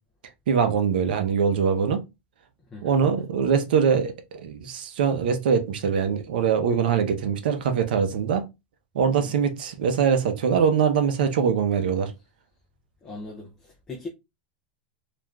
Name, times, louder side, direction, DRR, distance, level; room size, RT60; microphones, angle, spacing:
voice 1, 0.5-2.0 2.8-8.4 8.9-12.1, right 6 dB, 65° right, 0.6 m, -23 dB
voice 2, 2.7-3.3 9.1-9.4 13.0-14.1, left 3 dB, 10° left, 0.4 m, -40 dB
3.2 x 2.4 x 2.2 m
supercardioid pair, 175°, 5 cm